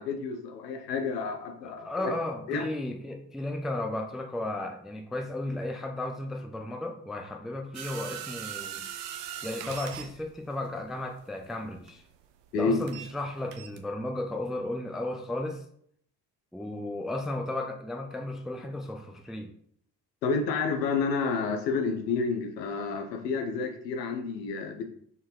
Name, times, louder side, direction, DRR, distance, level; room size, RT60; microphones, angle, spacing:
voice 1, 0.0-2.1 2.5-2.7 12.5-12.8 20.2-24.8, left 4 dB, 80° left, 5 dB, 0.7 m, -30 dB
voice 2, 1.6-8.8 9.4-12.0 12.5-15.6 16.5-19.5, left 1 dB, ahead, 5 dB, 0.3 m, -34 dB
sound 1, 7.7-13.2 13.5-13.8, right 10 dB, 70° right, 0.6 m, -40 dB
4.2 x 3.8 x 3.1 m, 0.64 s
figure-of-eight pair, 40°, 49 cm